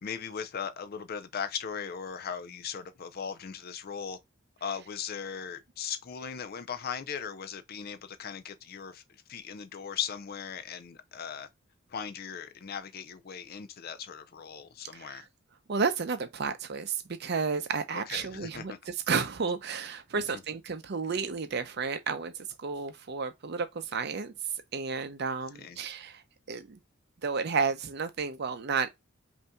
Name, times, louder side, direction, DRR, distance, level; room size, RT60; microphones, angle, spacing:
voice 1, 0.0-4.2 4.6-11.5 11.9-15.3 17.9-18.8 20.1-20.4 25.6-25.8, left 7 dB, 50° left, 0.5 m, -38 dB
voice 2, 15.7-26.2 26.5-26.8 27.2-28.9, right 5 dB, 55° right, 0.6 m, -32 dB
5.4 x 2.7 x 2.2 m
head